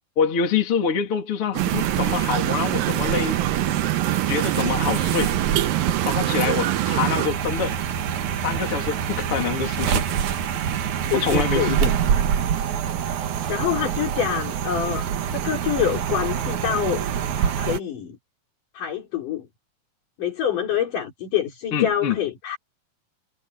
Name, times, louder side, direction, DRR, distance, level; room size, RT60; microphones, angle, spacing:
voice 1, 0.2-3.4 4.3-5.4 6.0-7.8 8.4-10.0 11.1-11.9 21.7-22.2, left 6 dB, 40° left, 3.3 m, -25 dB
sound 1, 1.5-7.3, right 17 dB, 85° right, 2.6 m, -25 dB
sound 2, 1.6-17.8, right 8 dB, 65° right, 2.8 m, -26 dB
voice 2, 11.1-11.7 13.1-17.1 17.4-18.2 18.7-19.5 20.2-22.6, left 9 dB, 70° left, 5.2 m, -26 dB
omnidirectional pair, 3.9 m